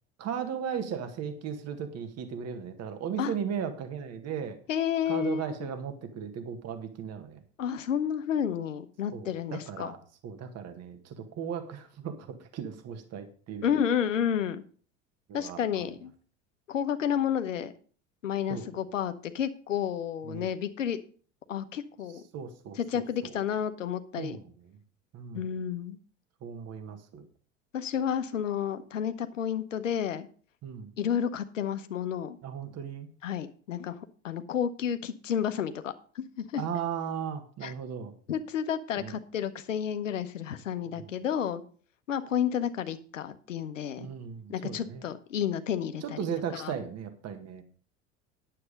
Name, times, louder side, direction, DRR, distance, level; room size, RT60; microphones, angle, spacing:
voice 1, 0.2-4.6 5.1-7.4 9.1-13.7 15.3-15.6 18.5-18.8 20.2-20.5 22.3-23.4 24.1-24.8 25.1-25.6 26.4-27.3 30.6-30.9 32.4-33.1 36.6-38.1 39.0-39.2 40.9-41.1 44.0-45.1 46.0-47.6, right 7 dB, 40° right, 7 dB, 1.8 m, -37 dB
voice 2, 4.7-5.7 7.6-9.9 13.6-14.6 15.3-16.1 16.7-17.7 18.2-21.0 21.5-22.2 22.8-24.4 25.3-26.0 27.7-30.3 31.0-32.4 33.2-34.0 34.2-36.6 37.6-37.7 38.3-41.6 42.1-44.1 44.5-46.2 46.6-46.7, left 8 dB, 80° left, 11 dB, 0.9 m, -31 dB
9.8 x 7.7 x 5.2 m, 0.43 s
figure-of-eight pair, 70°, 38 cm